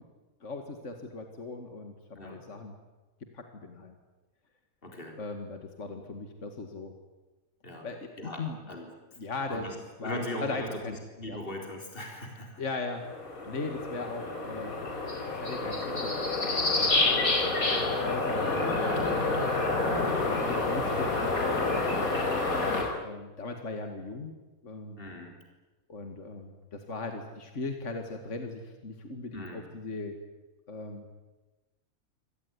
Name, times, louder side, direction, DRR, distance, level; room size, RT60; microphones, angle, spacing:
voice 1, 0.4-2.7 3.3-4.0 5.2-6.9 7.8-8.6 9.2-9.7 10.0-11.0 11.3-11.4 12.6-13.0 13.5-14.7 15.4-16.9 17.6-19.6 20.3-21.3 21.6-21.9 22.5-24.4 24.6-25.0 25.9-30.2 30.7-31.1, left 3 dB, 55° left, 5 dB, 2.5 m, -39 dB
voice 2, 4.8-5.2 7.6-7.9 8.2-8.9 9.5-9.8 10.0-12.6 14.2-14.3 16.9-17.3 22.0-22.3 25.0-25.3 29.3-29.6, left 1 dB, 40° left, 2 dB, 4.4 m, -40 dB
sound 1, 12.9-22.8, left 3 dB, 75° left, 5.5 m, -28 dB
27.5 x 18.0 x 9.8 m, 1.1 s
omnidirectional pair, 1.5 m